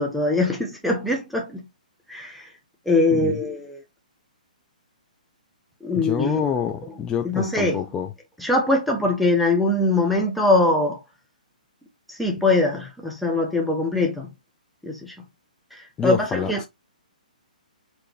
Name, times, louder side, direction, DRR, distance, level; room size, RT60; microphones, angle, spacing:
voice 1, 0.0-1.6 2.1-2.4 2.9-3.8 5.8-6.5 7.2-7.8 8.4-11.0 12.2-14.3 14.8-15.1 16.0-16.6, left 2 dB, ahead, 0.9 m, -22 dB
voice 2, 3.1-3.4 6.0-8.1 16.0-16.7, left 7 dB, 15° left, 0.4 m, -27 dB
4.2 x 3.1 x 3.0 m
figure-of-eight pair, 125°, 4 cm